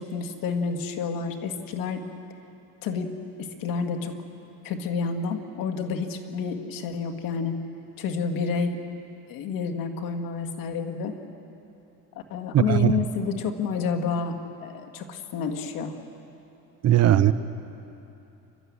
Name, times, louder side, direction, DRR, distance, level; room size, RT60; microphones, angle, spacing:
voice 1, 0.0-2.0 2.8-3.1 3.4-4.1 4.6-7.6 8.0-8.8 9.3-11.1 12.3-15.9, left 5 dB, 80° left, 5 dB, 2.1 m, -29 dB
voice 2, 12.5-12.9 16.8-17.3, right 12 dB, 50° right, 13 dB, 0.9 m, -18 dB
29.0 x 13.0 x 9.8 m, 3.0 s
cardioid pair, 135°, 34 cm